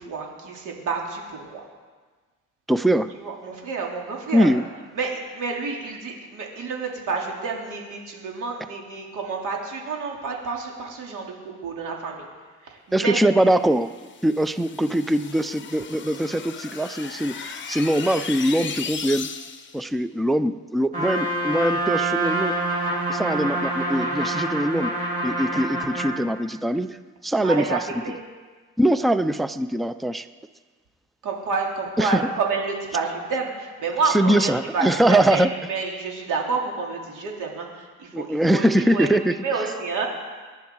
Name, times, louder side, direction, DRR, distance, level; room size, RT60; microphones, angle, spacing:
voice 1, 0.0-1.6 3.2-4.5 4.9-12.3 12.6-13.2 27.4-28.2 31.2-40.1, right 4 dB, 70° right, 0 dB, 3.3 m, -29 dB
voice 2, 2.7-3.1 4.3-4.6 12.9-13.9 14.2-19.3 19.7-22.5 23.1-24.9 25.2-27.0 27.2-27.8 28.8-30.3 32.0-32.3 34.1-35.5 38.1-39.3, right 1 dB, ahead, 12 dB, 0.4 m, -22 dB
sound 1, 13.8-19.8, left 6 dB, 35° left, 1.1 m, -36 dB
Trumpet, 20.9-26.2, right 1 dB, 25° right, 3.5 m, -26 dB
24.0 x 10.5 x 4.7 m, 1.4 s
cardioid pair, 130°, 31 cm